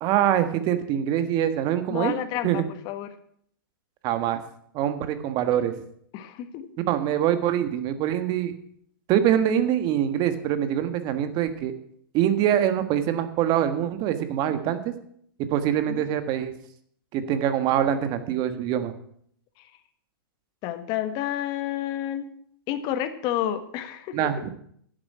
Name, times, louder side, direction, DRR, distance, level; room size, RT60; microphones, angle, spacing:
voice 1, 0.0-2.2 2.4-2.6 4.0-4.4 4.7-5.7 6.9-8.5 9.1-11.7 12.1-14.9 15.5-16.5 17.1-18.9 24.1-24.5, right 10 dB, 35° right, 10 dB, 1.5 m, -24 dB
voice 2, 1.9-3.1 6.1-6.7 14.7-14.8 15.9-16.1 20.6-22.3 22.7-24.3, left 11 dB, 35° left, 10 dB, 1.5 m, -30 dB
10.5 x 7.4 x 8.8 m, 0.65 s
hypercardioid pair, 125°, 12 cm